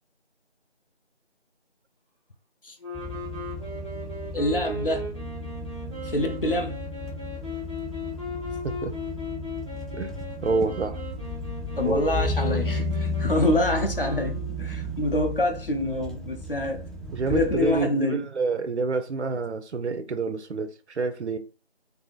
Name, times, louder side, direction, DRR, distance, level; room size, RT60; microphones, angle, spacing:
sound 1, 2.8-14.7, left 1 dB, 30° left, 0.9 m, -37 dB
sound 2, 2.9-17.9, left 1 dB, ahead, 0.3 m, -33 dB
voice 1, 4.3-5.0 6.0-6.8 11.8-16.9 17.3-18.2, left 1 dB, 55° left, 0.6 m, -26 dB
voice 2, 10.4-11.0 11.8-12.1 17.1-21.4, right 4 dB, 90° right, 0.6 m, -28 dB
2.7 x 2.5 x 2.4 m
figure-of-eight pair, 175°, 33 cm